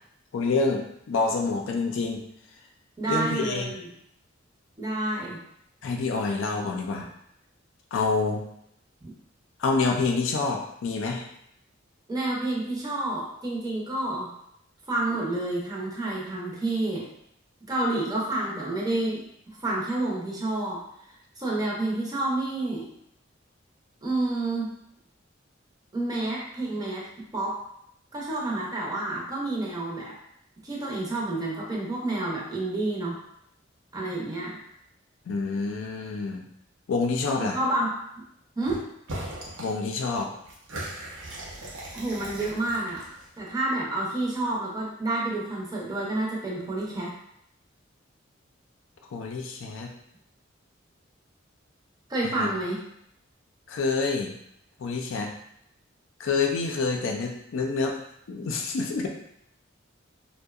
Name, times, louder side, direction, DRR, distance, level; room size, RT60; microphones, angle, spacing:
voice 1, 0.3-2.2 3.1-3.7 5.8-7.1 7.9-8.5 9.6-11.3 35.3-36.4 36.9-37.6 39.6-40.3 49.1-49.9 52.2-52.5 53.7-54.3 54.8-55.3 56.2-58.0 58.3-59.1, left 4 dB, 85° left, 2 dB, 0.4 m, -27 dB
voice 2, 3.0-3.9 4.8-5.4 9.0-9.1 12.1-14.3 14.9-17.1 17.7-19.2 19.6-20.8 21.4-22.9 24.0-24.7 25.9-27.0 27.3-27.6 28.1-30.1 30.6-33.2 33.9-34.6 37.4-37.9 38.6-38.8 41.9-43.0 43.4-47.1 52.1-52.8, right 2 dB, 20° right, -4 dB, 0.5 m, -29 dB
sound 1, 38.6-38.8 39.1-39.7 40.0-43.4, right 1 dB, 85° right, 0.6 m, -38 dB
2.6 x 2.1 x 2.3 m, 0.74 s
head